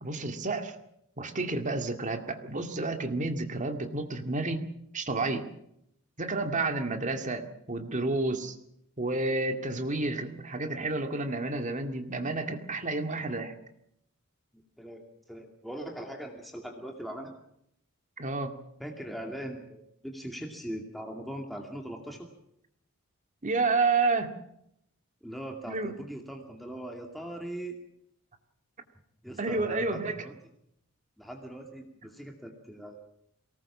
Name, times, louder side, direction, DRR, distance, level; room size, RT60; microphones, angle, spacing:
voice 1, 0.0-0.8 1.2-4.6 4.9-5.5 6.2-8.6 9.0-13.6 18.2-18.5 23.4-24.3 25.7-25.9 29.4-30.2, right 3 dB, 35° right, 6 dB, 2.2 m, -30 dB
voice 2, 14.8-17.3 18.8-22.3 25.2-27.8 29.2-30.4 31.2-32.9, right 1 dB, ahead, 2 dB, 2.4 m, -40 dB
23.0 x 19.0 x 7.3 m, 0.75 s
head